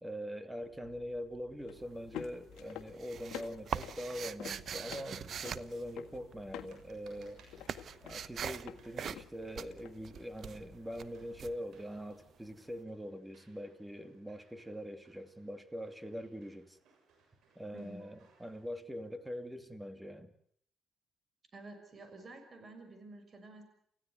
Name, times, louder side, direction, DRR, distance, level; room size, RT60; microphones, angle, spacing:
voice 1, 0.0-7.4 8.0-16.8 17.6-20.3, equal, 10° right, 2.5 m, -43 dB
sound 1, 0.6-11.5, left 12 dB, 90° left, 1.6 m, -51 dB
sound 2, 1.7-2.3 2.6-6.6 6.9-12.5, right 8 dB, 60° right, 0.9 m, -42 dB
sound 3, 5.5-18.6, right 4 dB, 80° right, 7.1 m, -67 dB
voice 2, 21.5-23.6, right 2 dB, 35° right, 6.3 m, -49 dB
29.5 x 15.5 x 8.0 m
cardioid pair, 90°, 0 cm